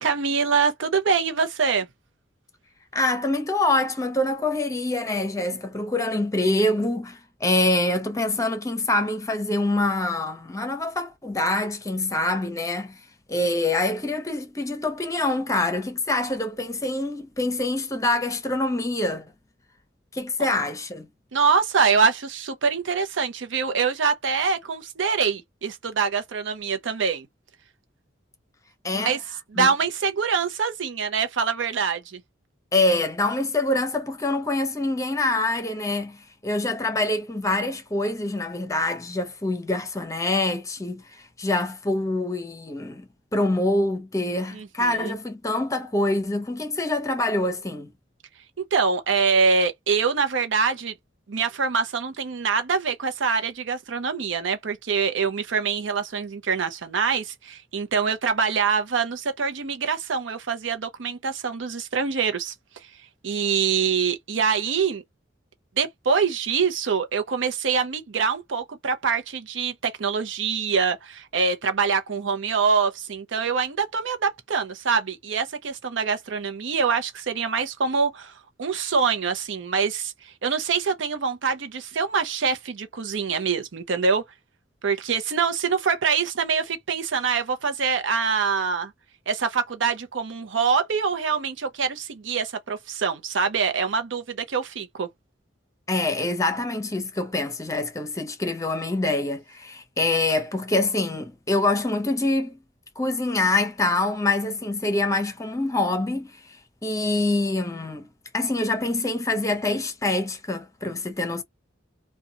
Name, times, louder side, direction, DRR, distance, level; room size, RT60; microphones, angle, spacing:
voice 1, 0.0-1.9 21.3-27.3 28.9-29.2 29.5-32.2 44.5-45.1 48.7-50.9 51.3-62.5 63.2-65.0 65.8-78.3 78.6-84.2 84.8-88.9 89.3-95.1, right 5 dB, 80° right, 0.6 m, -24 dB
voice 2, 2.9-13.0 13.3-19.3 20.1-21.1 28.8-29.2 29.6-29.7 32.7-47.9 95.9-102.6 103.0-108.1 108.3-111.4, left 2 dB, 15° left, 0.7 m, -25 dB
2.5 x 2.2 x 2.8 m
head